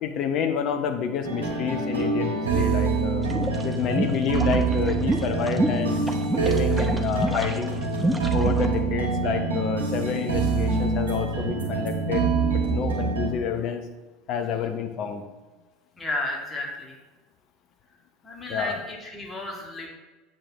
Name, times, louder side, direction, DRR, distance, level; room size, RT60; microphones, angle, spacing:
voice 1, 0.0-3.3 3.6-6.0 6.3-7.7 8.3-13.8 14.3-15.2 18.5-18.8, left 7 dB, 50° left, 7 dB, 0.8 m, -29 dB
sound 1, 1.2-13.3, right 4 dB, 75° right, 1.8 m, -25 dB
sound 2, 3.2-8.7, right 1 dB, 10° right, 0.9 m, -28 dB
voice 2, 16.0-17.0 18.2-19.9, left 2 dB, 20° left, -1 dB, 1.9 m, -32 dB
8.7 x 7.9 x 3.0 m, 1.2 s
figure-of-eight pair, 70°, 0 cm